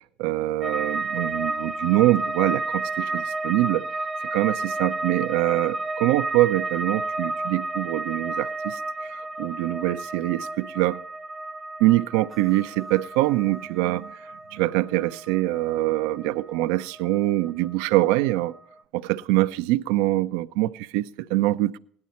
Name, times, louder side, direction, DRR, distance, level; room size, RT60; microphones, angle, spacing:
voice 1, 0.2-3.8 4.3-8.8 9.1-11.0 11.8-14.1 14.5-18.5 18.9-21.8, right 17 dB, 75° right, 0.5 m, -24 dB
sound 1, 0.6-17.7 18.0-18.7, right 2 dB, 20° right, 0.5 m, -32 dB
17.0 x 10.5 x 4.3 m
supercardioid pair, 105°, 0 cm